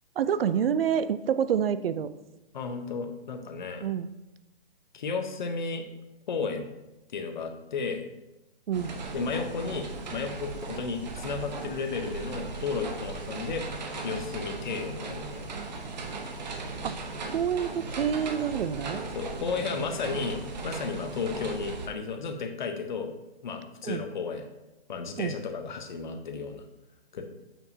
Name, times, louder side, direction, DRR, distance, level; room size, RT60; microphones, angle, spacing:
voice 1, 0.2-2.1 3.8-4.1 8.7-9.0 16.8-17.0 17.3-19.0 23.8-24.0 25.2-25.3, right 8 dB, 65° right, 13 dB, 0.5 m, -27 dB
voice 2, 2.5-3.9 4.9-5.8 6.3-6.7 7.1-8.0 9.1-13.7 14.0-15.5 19.1-23.1 23.4-24.4 24.9-26.6 27.1-27.2, left 5 dB, 50° left, 5 dB, 0.8 m, -33 dB
sound 1, 8.7-21.9, right 3 dB, 45° right, 0.9 m, -37 dB
7.0 x 5.6 x 2.7 m, 0.99 s
hypercardioid pair, 165°, 31 cm